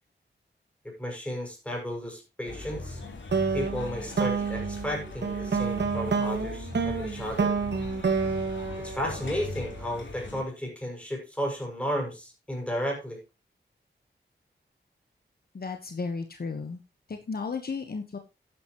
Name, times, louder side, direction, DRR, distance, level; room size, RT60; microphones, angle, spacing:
voice 1, 0.8-3.0 3.5-7.5 8.8-13.2, equal, 5° left, 0 dB, 6.8 m, -33 dB
sound 1, 2.4-10.4, left 2 dB, 85° left, 3.4 m, -40 dB
sound 2, 3.3-9.7, right 5 dB, 65° right, 2.0 m, -29 dB
voice 2, 15.5-16.8 17.1-18.2, left 4 dB, 55° left, 6 dB, 1.4 m, -34 dB
12.0 x 10.5 x 3.1 m, 0.27 s
wide cardioid pair, 105°, 19 cm